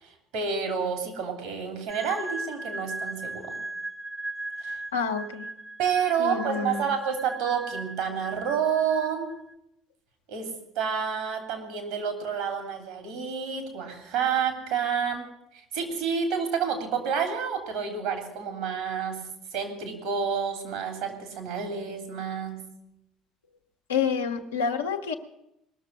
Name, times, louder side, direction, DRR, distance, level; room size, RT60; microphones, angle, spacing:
voice 1, 0.0-3.6 4.6-4.8 5.8-9.3 10.3-15.2 15.5-19.2 19.5-22.6, right 7 dB, 70° right, 6 dB, 3.2 m, -29 dB
sound 1, 1.9-9.5, right 2 dB, 5° left, 0.7 m, -38 dB
voice 2, 4.9-5.5 6.2-6.9 23.9-25.1, left 6 dB, 85° left, 3 dB, 1.1 m, -28 dB
20.0 x 6.8 x 9.9 m, 0.81 s
figure-of-eight pair, 60°, 0 cm